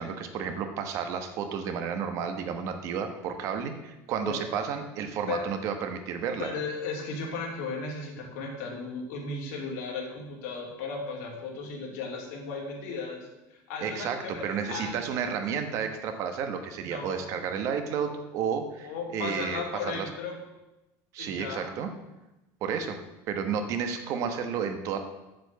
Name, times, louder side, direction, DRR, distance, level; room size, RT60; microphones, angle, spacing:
voice 1, 0.0-6.5 13.8-20.1 21.1-21.9 22.6-23.0 23.3-25.0, right 7 dB, 40° right, 7 dB, 1.1 m, -32 dB
voice 2, 6.4-14.9 16.8-17.3 18.8-20.4 21.2-21.8, left 4 dB, 85° left, -1 dB, 2.9 m, -36 dB
7.7 x 6.9 x 6.8 m, 0.98 s
cardioid pair, 175°, 8 cm